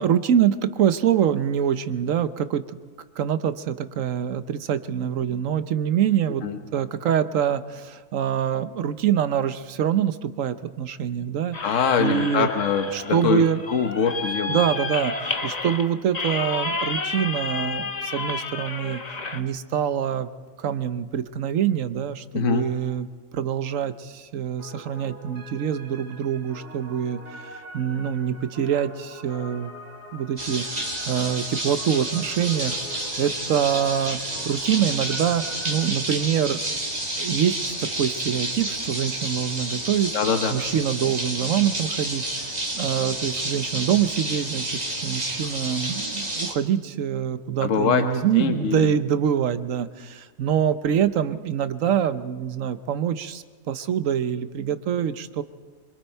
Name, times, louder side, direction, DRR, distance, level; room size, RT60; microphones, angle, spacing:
voice 1, 0.0-2.7 3.2-6.4 6.7-11.6 12.0-12.5 12.9-13.6 14.5-15.1 15.4-19.0 19.3-20.3 20.6-27.2 27.7-29.7 30.1-34.2 34.4-36.6 37.2-40.1 40.5-42.5 42.7-55.4, right 9 dB, 80° right, 12 dB, 1.2 m, -25 dB
sound 1, 11.5-19.4, left 3 dB, 35° left, 1.0 m, -31 dB
voice 2, 11.6-14.6 22.3-22.6 40.1-40.6 47.6-48.0 48.3-48.9, left 6 dB, 75° left, 5 dB, 1.4 m, -23 dB
sound 2, 24.6-35.9, right 1 dB, 60° right, 2.9 m, -43 dB
sound 3, 30.4-46.5, right 1 dB, 30° right, 2.5 m, -30 dB
25.0 x 23.0 x 4.5 m, 1.4 s
omnidirectional pair, 1.3 m